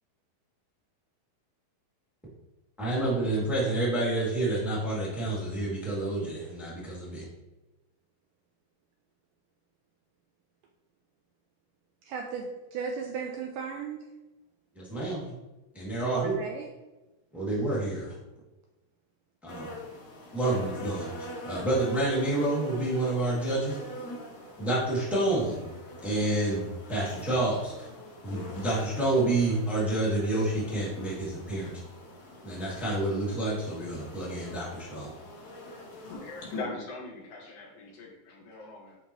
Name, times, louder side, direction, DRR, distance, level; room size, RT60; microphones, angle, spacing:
voice 1, 2.8-7.2 14.7-15.3 15.7-16.3 17.3-18.1 19.4-19.7 20.3-23.7 24.6-25.7 26.0-26.6 26.9-27.9 28.2-31.7 32.4-35.1, right 2 dB, ahead, -8 dB, 1.2 m, -29 dB
voice 2, 12.1-14.0 16.0-16.7, right 5 dB, 80° right, 2 dB, 1.9 m, -35 dB
sound 1, 19.5-36.6, left 1 dB, 55° left, 2.7 m, -44 dB
voice 3, 36.1-39.0, left 3 dB, 70° left, -4 dB, 3.3 m, -40 dB
11.0 x 3.9 x 3.0 m, 1.1 s
omnidirectional pair, 4.2 m